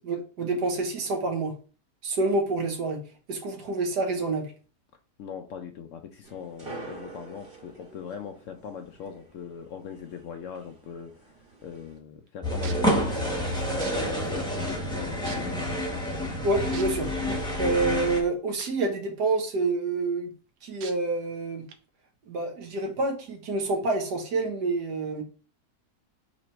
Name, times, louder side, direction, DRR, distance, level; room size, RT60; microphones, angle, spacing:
voice 1, 0.0-1.5 2.0-3.0 3.3-4.5 16.4-17.1 17.5-20.3 20.6-21.6 22.2-25.2, right 3 dB, 90° right, 3 dB, 1.7 m, -27 dB
voice 2, 5.2-11.3 11.6-15.8, left 7 dB, 70° left, 6 dB, 0.7 m, -41 dB
sound 1, 6.2-12.0, right 3 dB, 35° right, 1.2 m, -47 dB
sound 2, 12.3-12.4 12.6-12.9 13.8-13.9 14.7-14.8 15.2-15.6 16.7-16.8 18.6-18.7 19.2-19.3 20.8-20.9 21.7-21.8, right 7 dB, 70° right, 1.1 m, -40 dB
sound 3, 12.4-18.2, equal, 5° left, 0.8 m, -28 dB
4.1 x 3.0 x 4.4 m, 0.37 s
omnidirectional pair, 1.7 m